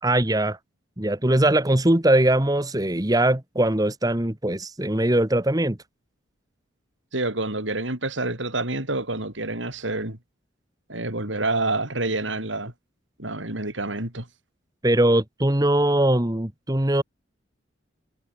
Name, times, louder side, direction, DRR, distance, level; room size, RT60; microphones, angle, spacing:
voice 1, 0.0-0.6 1.0-5.8 14.8-17.0, right 1 dB, 20° right, 1.3 m, -21 dB
voice 2, 7.1-10.2 10.9-12.7 13.2-14.3, right 2 dB, 75° right, 5.6 m, -28 dB
head